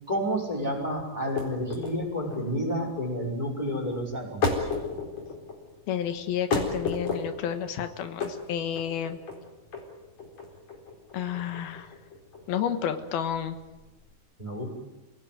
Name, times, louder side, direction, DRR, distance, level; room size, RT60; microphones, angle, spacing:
voice 1, 0.1-4.5 14.4-14.7, equal, 10° right, 1 dB, 5.2 m, -30 dB
sound 1, 1.2-14.1, left 4 dB, 45° left, 5.2 m, -34 dB
voice 2, 5.9-9.2 11.1-11.9 12.5-13.6, left 9 dB, 80° left, 8 dB, 3.2 m, -31 dB
28.0 x 17.5 x 9.4 m, 1.1 s
omnidirectional pair, 4.3 m